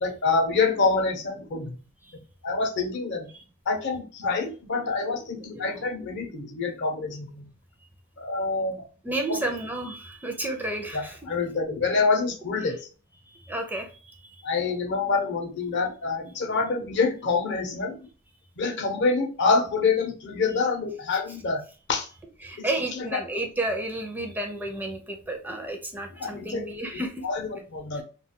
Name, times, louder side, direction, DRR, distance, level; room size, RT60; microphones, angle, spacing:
voice 1, 0.0-1.8 2.4-3.3 3.7-7.5 8.2-8.8 9.3-9.4 10.9-12.9 14.4-18.0 18.6-21.6 21.9-22.1 22.6-22.7 22.9-23.2 26.2-26.7 27.2-28.0, left 4 dB, 55° left, 4 dB, 0.6 m, -26 dB
voice 2, 9.0-11.2 13.4-14.4 22.4-27.2, right 2 dB, 10° right, 3 dB, 0.4 m, -31 dB
2.2 x 2.2 x 3.6 m, 0.36 s
head